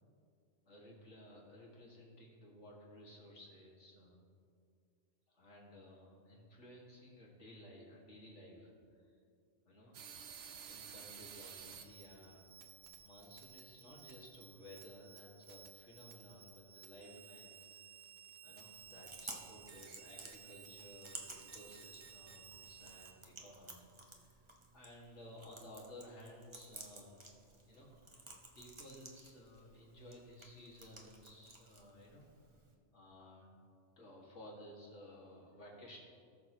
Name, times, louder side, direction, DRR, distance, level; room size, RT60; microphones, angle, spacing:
voice 1, 0.7-4.3 5.3-9.1 9.7-9.9 10.7-12.5 13.0-17.9 18.4-24.4 24.7-27.3 27.7-27.9 28.5-32.2 32.9-33.5 34.0-36.0, left 1 dB, 80° left, -4 dB, 2.4 m, -56 dB
sound 1, 9.9-23.1, right 7 dB, 65° right, 1.0 m, -55 dB
Chewing mastication, 18.7-32.7, right 2 dB, 25° right, 1.0 m, -55 dB
18.5 x 6.4 x 3.0 m, 2.4 s
omnidirectional pair, 1.2 m